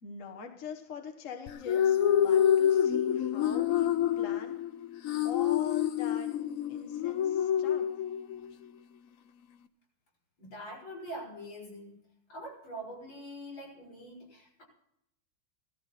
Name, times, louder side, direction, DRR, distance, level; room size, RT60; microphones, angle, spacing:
voice 1, 0.0-2.0 2.2-3.9 4.2-4.6 5.2-6.3 6.7-7.9, left 6 dB, 45° left, 3 dB, 1.4 m, -43 dB
sound 1, 1.5-8.5, left 10 dB, 85° left, 0.7 m, -27 dB
voice 2, 10.4-11.9 12.3-14.6, equal, 65° left, -3 dB, 6.9 m, -44 dB
17.0 x 14.0 x 4.1 m, 0.80 s
omnidirectional pair, 2.3 m